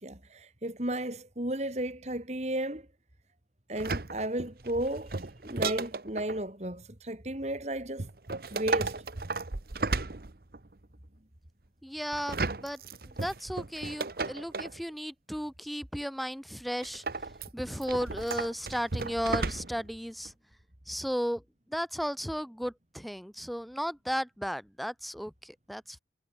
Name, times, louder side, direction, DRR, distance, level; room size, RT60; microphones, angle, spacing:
voice 1, 0.0-2.9 3.7-5.2 5.4-8.1 8.5-9.0, right 1 dB, 40° right, 2.9 m, -34 dB
sound 1, 3.8-6.4 8.0-10.7 12.1-14.8 16.8-19.9 20.2-20.3, right 3 dB, 55° right, 1.1 m, -34 dB
voice 2, 11.8-17.0 17.5-20.3 20.9-21.4 21.7-26.0, equal, ahead, 4.5 m, -35 dB
head